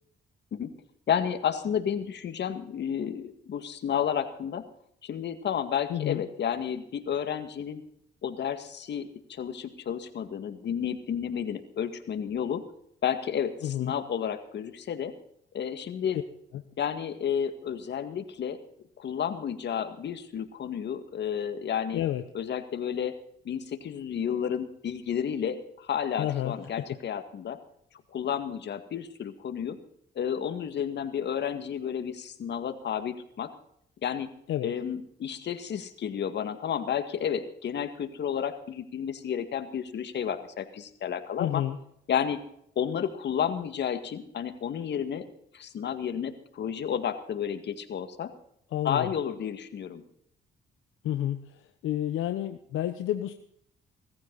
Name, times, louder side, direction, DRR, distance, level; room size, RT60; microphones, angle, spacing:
voice 1, 1.1-4.6 5.0-7.8 8.2-12.6 13.0-15.1 15.5-16.2 16.8-18.6 19.0-22.0 22.3-23.1 23.4-27.6 28.1-29.8 30.2-33.5 34.0-34.3 34.6-41.6 42.1-42.4 42.8-45.3 45.5-48.3 48.8-50.0, left 8 dB, 60° left, 8 dB, 2.0 m, -31 dB
voice 2, 5.9-6.2 13.6-13.9 16.1-16.2 21.9-22.2 26.2-26.9 34.5-34.7 41.4-41.8 48.7-49.1 51.0-51.4 51.8-53.3, left 12 dB, 85° left, 8 dB, 1.0 m, -30 dB
18.0 x 15.0 x 4.1 m, 0.69 s
cardioid pair, 90°, 20 cm